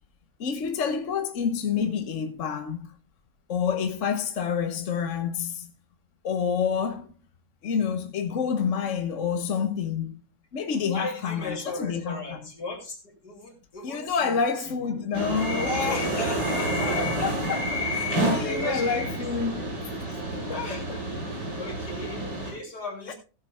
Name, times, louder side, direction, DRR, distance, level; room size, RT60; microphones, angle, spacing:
voice 1, 0.4-2.9 3.5-5.7 6.2-7.1 7.6-10.2 10.5-12.4 13.8-16.1 17.0-19.8 20.1-20.2 20.5-20.6 23.1-23.2, left 6 dB, 50° left, 1.2 m, -28 dB
voice 2, 10.9-15.0 15.6-17.0 17.8-19.7 20.5-23.1, left 3 dB, 70° left, 3.6 m, -37 dB
sound 1, 15.1-22.5, right 1 dB, 80° right, 6.5 m, -29 dB
16.5 x 7.4 x 3.4 m
omnidirectional pair, 1.8 m